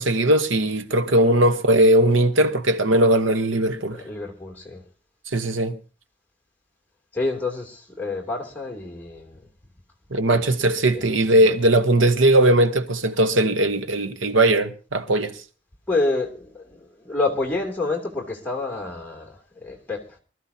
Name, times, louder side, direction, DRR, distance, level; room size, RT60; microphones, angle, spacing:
voice 1, 0.0-4.0 5.3-5.8 10.1-15.3, right 1 dB, 85° right, 1.2 m, -19 dB
voice 2, 3.9-4.8 7.1-9.4 10.3-10.6 10.9-11.6 15.9-20.2, left 3 dB, 10° left, 2.9 m, -28 dB
24.5 x 14.0 x 2.8 m
head